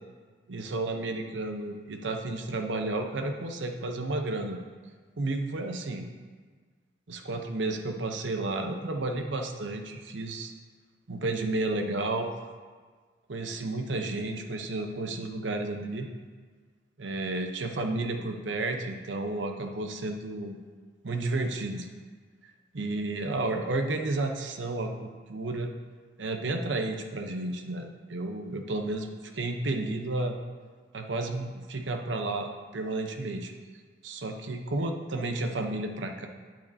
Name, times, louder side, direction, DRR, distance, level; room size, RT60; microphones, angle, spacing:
voice 1, 0.5-4.6 5.2-6.1 7.1-10.5 11.1-12.3 13.3-16.1 17.0-20.6 21.0-21.9 22.7-25.7 26.2-29.1 29.3-30.4 30.9-33.5 34.0-36.3, right 2 dB, 85° right, 5 dB, 0.8 m, -32 dB
8.8 x 8.6 x 2.7 m, 1.5 s
head